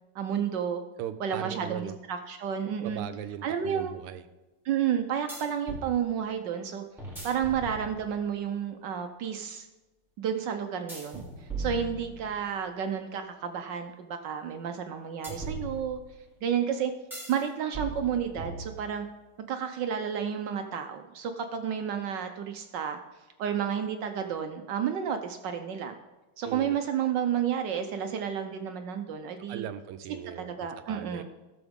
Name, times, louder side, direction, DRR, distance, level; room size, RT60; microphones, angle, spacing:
voice 1, 0.1-0.8 1.2-3.0 3.4-3.9 4.6-6.8 7.2-9.7 10.2-16.0 16.4-16.9 17.3-19.1 19.5-23.0 23.4-25.9 26.4-29.7 30.4-31.2, right 8 dB, 65° right, 6 dB, 1.2 m, -31 dB
voice 2, 1.0-2.0 2.8-4.2 26.4-26.8 29.4-31.2, right 10 dB, 85° right, 11 dB, 1.6 m, -39 dB
sound 1, 2.9-3.0 5.3-5.9 7.0-8.3 10.9-12.6 15.2-16.2 17.1-17.4 17.7-19.1, right 2 dB, ahead, 2.8 m, -39 dB
16.0 x 6.9 x 3.6 m, 1.1 s
omnidirectional pair, 2.4 m